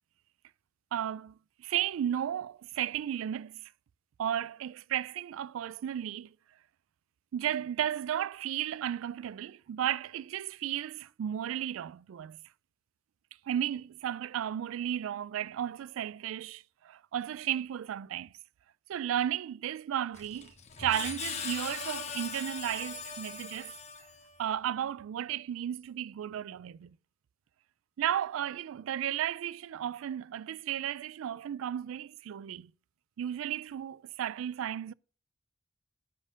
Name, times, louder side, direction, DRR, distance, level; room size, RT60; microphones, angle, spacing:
voice 1, 0.9-1.3 1.6-3.6 4.2-6.3 7.3-12.4 13.5-18.3 18.9-20.5 20.8-23.7 24.4-26.9 28.0-32.7 33.2-34.9, right 10 dB, 90° right, 0.3 m, -34 dB
Screech, 20.1-24.4, left 6 dB, 35° left, 1.0 m, -40 dB
10.0 x 4.3 x 6.2 m
head